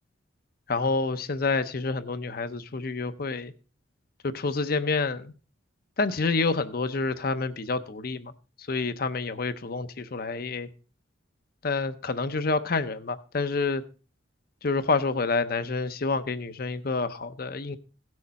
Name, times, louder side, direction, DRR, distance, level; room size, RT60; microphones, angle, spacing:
voice 1, 0.7-3.5 4.2-5.3 6.0-8.3 8.6-10.7 11.6-13.8 14.6-17.8, left 4 dB, 50° left, 12 dB, 0.6 m, -28 dB
16.5 x 6.4 x 4.1 m, 0.37 s
head